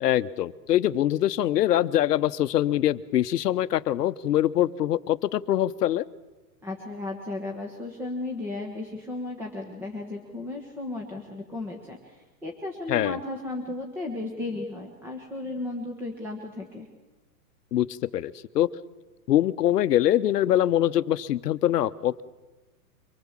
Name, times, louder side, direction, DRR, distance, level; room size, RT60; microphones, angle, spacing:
voice 1, 0.0-6.0 12.9-13.2 17.7-17.9 18.1-18.7 19.3-22.2, left 12 dB, 75° left, 14 dB, 0.9 m, -23 dB
voice 2, 6.6-16.9, left 2 dB, 5° right, 0 dB, 1.2 m, -35 dB
24.5 x 20.0 x 7.4 m, 1.2 s
hypercardioid pair, 160°, 48 cm